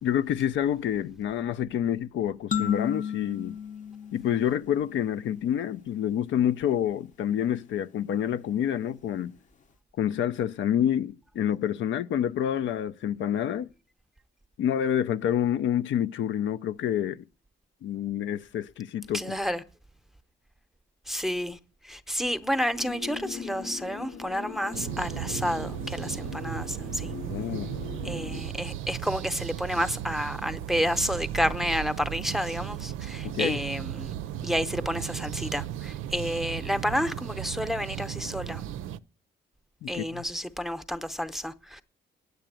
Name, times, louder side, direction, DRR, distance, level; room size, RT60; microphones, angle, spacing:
voice 1, 0.0-3.6 4.1-9.4 10.0-13.7 14.6-17.2 17.8-19.4 27.3-27.8 33.2-33.6 39.8-40.2, left 10 dB, 70° left, 0.5 m, -28 dB
sound 1, 2.5-5.2, left 7 dB, 40° left, 0.7 m, -33 dB
voice 2, 19.1-19.6 21.1-27.1 28.0-34.1 34.4-38.6 39.9-41.8, equal, ahead, 0.8 m, -30 dB
sound 2, 22.7-28.4, left 7 dB, 90° left, 1.4 m, -40 dB
sound 3, 24.7-39.0, right 11 dB, 85° right, 0.5 m, -36 dB
9.0 x 8.0 x 8.9 m
cardioid pair, 90°, 20 cm